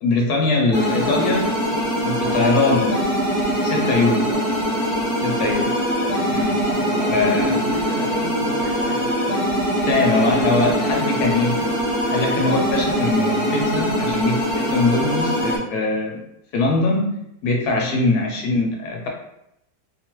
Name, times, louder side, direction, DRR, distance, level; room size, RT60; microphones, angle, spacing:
voice 1, 0.0-2.9 3.6-4.3 5.2-5.7 6.3-6.6 7.1-7.5 9.8-11.5 12.1-16.2 16.5-19.1, left 3 dB, 75° left, 0 dB, 1.0 m, -22 dB
sound 1, 0.7-15.6, equal, 30° left, 0.6 m, -22 dB
voice 2, 2.2-2.8 3.9-4.4 5.2-5.6 6.0-6.2 6.6-9.4 9.8-11.8 17.8-18.1, equal, 70° right, -2 dB, 1.0 m, -31 dB
2.9 x 2.1 x 2.9 m, 0.80 s
omnidirectional pair, 1.9 m